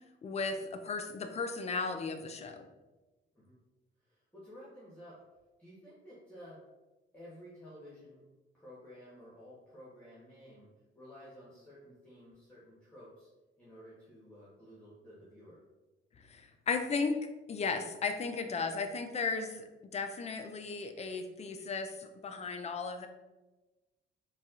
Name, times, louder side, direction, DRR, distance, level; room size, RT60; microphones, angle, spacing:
voice 1, 0.2-2.7 16.2-17.2 17.5-19.6 19.9-23.1, left 4 dB, 35° left, 6 dB, 0.4 m, -35 dB
voice 2, 4.0-5.1 5.6-6.6 7.1-8.2 8.5-10.7 10.9-13.3 13.6-15.6, equal, 10° left, -8 dB, 1.1 m, -53 dB
4.2 x 2.3 x 2.4 m, 1.1 s
cardioid pair, 90°, 20 cm